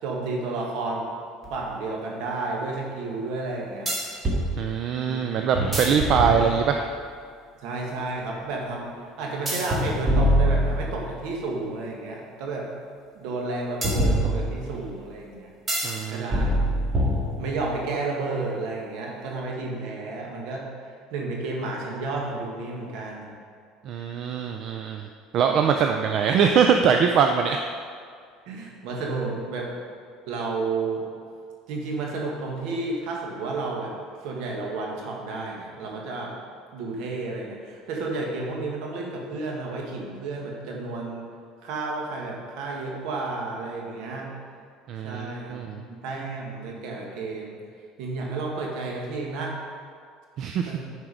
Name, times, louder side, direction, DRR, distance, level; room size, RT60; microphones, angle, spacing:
voice 1, 0.0-1.1 1.5-3.9 5.0-5.2 7.6-8.9 9.2-12.7 13.1-15.5 16.1-16.5 17.4-23.3 28.4-29.7 30.3-31.1 31.7-33.9 34.2-36.3 36.7-41.3 41.6-44.3 45.0-47.6 48.0-49.6 50.6-50.8, right 3 dB, 70° right, -1 dB, 1.7 m, -31 dB
sound 1, 1.4-1.5 3.9-4.5 5.5-6.9 9.5-11.2 13.8-14.8 15.7-16.0 16.3-17.7, equal, 20° right, 1.8 m, -24 dB
voice 2, 4.6-6.9 15.8-16.3 23.9-25.1 25.3-27.7 44.9-45.8 50.4-50.7, right 7 dB, 50° right, 4 dB, 0.4 m, -23 dB
9.8 x 4.6 x 5.0 m, 2.1 s
cardioid pair, 125°, 0 cm